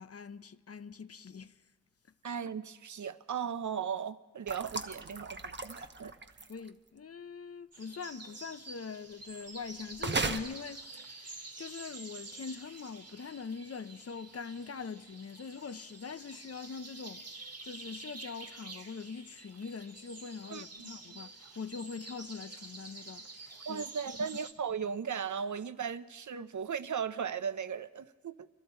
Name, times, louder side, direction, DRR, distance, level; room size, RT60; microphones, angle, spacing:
voice 1, 0.0-1.5 6.5-23.2 23.7-23.8 24.2-24.3, left 5 dB, 50° left, 0.6 m, -43 dB
voice 2, 2.2-6.1 20.5-21.2 23.7-28.5, right 7 dB, 70° right, 0.6 m, -37 dB
sound 1, 4.5-6.7 10.0-10.4, right 3 dB, 35° right, 0.9 m, -35 dB
sound 2, 7.7-24.5, right 3 dB, 50° right, 1.4 m, -49 dB
25.5 x 12.5 x 4.4 m
wide cardioid pair, 65°, 31 cm